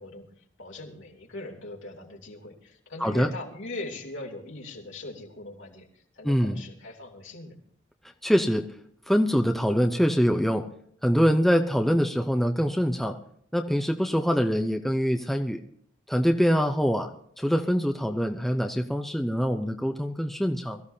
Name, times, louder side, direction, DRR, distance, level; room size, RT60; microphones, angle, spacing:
voice 1, 0.0-7.5, left 2 dB, 75° left, -1 dB, 3.2 m, -40 dB
voice 2, 3.0-3.3 6.2-6.6 8.2-8.6 9.1-10.6 11.0-13.2 13.5-15.6 16.1-17.1 17.4-20.8, equal, ahead, 4 dB, 0.7 m, -24 dB
23.0 x 14.5 x 2.8 m, 0.64 s
head